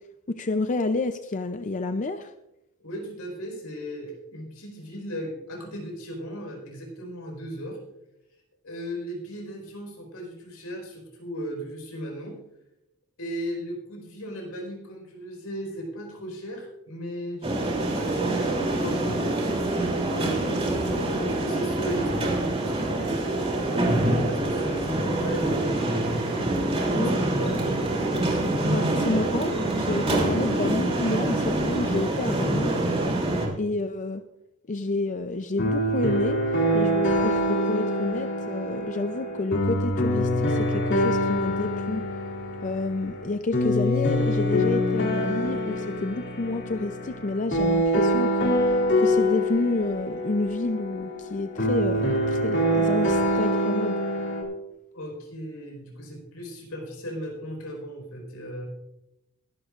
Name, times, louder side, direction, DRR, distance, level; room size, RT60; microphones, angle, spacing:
voice 1, 0.3-2.3 27.0-27.1 28.6-32.7 33.6-34.2 34.7-36.4 36.7-42.0 42.6-54.0, left 2 dB, 35° left, 9 dB, 0.5 m, -29 dB
voice 2, 2.8-7.8 8.6-12.4 13.2-26.2 26.8-28.1 54.9-58.7, equal, 80° left, 1 dB, 4.8 m, -37 dB
sound 1, 17.4-33.5, right 2 dB, 25° right, 3.1 m, -25 dB
sound 2, 35.6-54.4, equal, 55° left, 2.5 m, -25 dB
22.0 x 11.5 x 2.5 m, 0.88 s
head